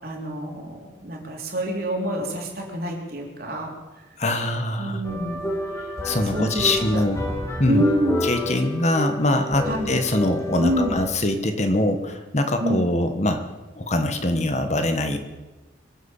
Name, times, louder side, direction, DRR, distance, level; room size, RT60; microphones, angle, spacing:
voice 1, 0.0-3.7 4.8-5.5 6.2-7.0 7.7-8.2 9.6-10.0 10.6-11.0 12.6-12.8, equal, 55° right, 0 dB, 3.8 m, -27 dB
voice 2, 4.2-5.0 6.0-7.2 7.6-7.8 8.2-13.4 13.8-15.2, left 1 dB, 40° left, 7 dB, 1.4 m, -23 dB
sound 1, 5.0-11.0, left 1 dB, 15° left, 2.1 m, -30 dB
24.0 x 8.3 x 7.3 m, 1.2 s
head